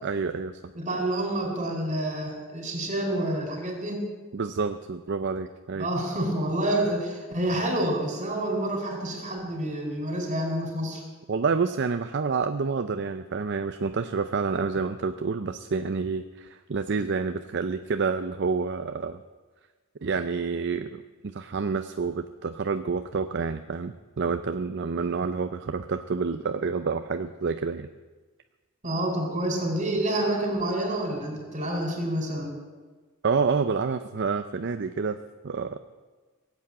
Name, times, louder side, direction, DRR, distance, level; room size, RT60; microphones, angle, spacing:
voice 1, 0.0-0.7 4.3-5.9 11.3-19.2 20.0-27.9 33.2-35.2 35.4-35.8, right 5 dB, 55° right, 9 dB, 0.5 m, -28 dB
voice 2, 0.7-4.0 5.8-11.0 28.8-32.5, right 1 dB, 35° right, 2 dB, 4.2 m, -28 dB
17.5 x 8.3 x 8.6 m, 1.3 s
head